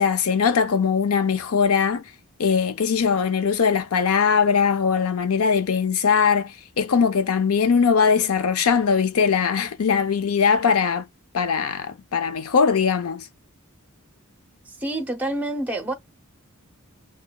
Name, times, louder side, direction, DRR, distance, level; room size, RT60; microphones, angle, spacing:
voice 1, 0.0-2.0 2.4-11.1 11.3-13.3, left 6 dB, 85° left, 0.6 m, -21 dB
voice 2, 14.7-15.9, right 1 dB, 5° right, 0.6 m, -27 dB
6.2 x 2.2 x 2.2 m
head